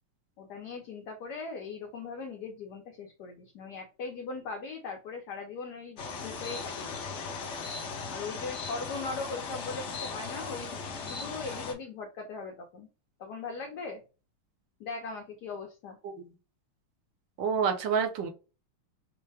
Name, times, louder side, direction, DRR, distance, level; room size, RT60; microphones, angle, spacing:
voice 1, 0.4-7.3 8.1-12.9 13.2-14.0 14.8-16.0, left 4 dB, 65° left, 2 dB, 1.1 m, -40 dB
sound 1, 6.0-11.7, left 4 dB, 85° left, 0.6 m, -38 dB
voice 2, 17.4-18.3, right 6 dB, 70° right, 5 dB, 1.3 m, -28 dB
4.6 x 2.1 x 3.3 m, 0.32 s
omnidirectional pair, 2.3 m